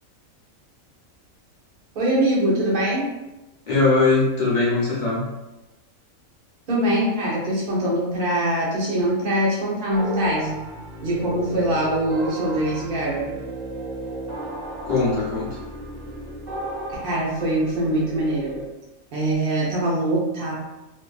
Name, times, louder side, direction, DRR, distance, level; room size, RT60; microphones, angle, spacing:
voice 1, 1.9-3.1 6.7-10.6 11.0-13.4 16.9-18.6 19.1-20.5, right 1 dB, 45° right, -5 dB, 0.8 m, -23 dB
voice 2, 3.7-5.3 14.8-15.6, left 3 dB, 45° left, -6 dB, 0.6 m, -20 dB
sound 1, 9.9-18.6, right 1 dB, 65° right, 0.4 m, -34 dB
2.6 x 2.5 x 2.3 m, 1.0 s
omnidirectional pair, 1.5 m